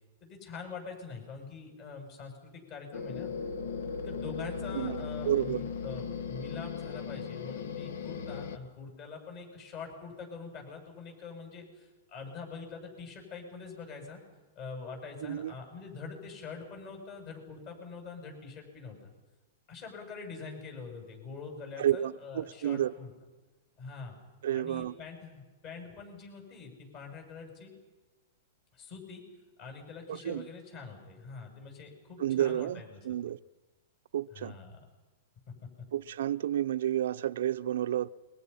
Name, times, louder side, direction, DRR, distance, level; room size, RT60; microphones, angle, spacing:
voice 1, 0.2-3.3 4.1-14.2 14.6-19.0 19.7-23.1 23.8-24.2 24.5-27.7 28.7-29.2 29.6-33.0 34.4-34.8, left 4 dB, 35° left, 7.7 m, -44 dB
sound 1, 2.9-8.6, left 5 dB, 75° left, 1.5 m, -37 dB
voice 2, 4.7-5.6 15.2-15.5 21.8-22.9 24.4-24.9 30.1-30.5 32.2-33.4 34.1-34.6 35.9-38.1, right 11 dB, 75° right, 0.7 m, -31 dB
29.0 x 23.0 x 5.7 m
hypercardioid pair, 155°, 0 cm